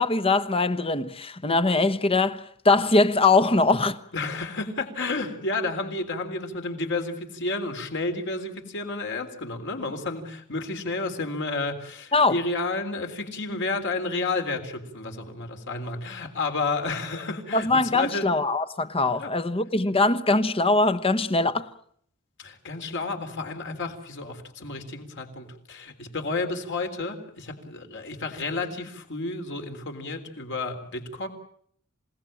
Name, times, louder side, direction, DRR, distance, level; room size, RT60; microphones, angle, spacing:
voice 1, 0.0-4.0 12.1-12.4 17.5-21.7, left 3 dB, 25° left, 1.1 m, -22 dB
voice 2, 4.1-18.3 19.2-19.3 22.4-31.3, left 3 dB, 55° left, 3.7 m, -31 dB
27.5 x 18.0 x 8.8 m
head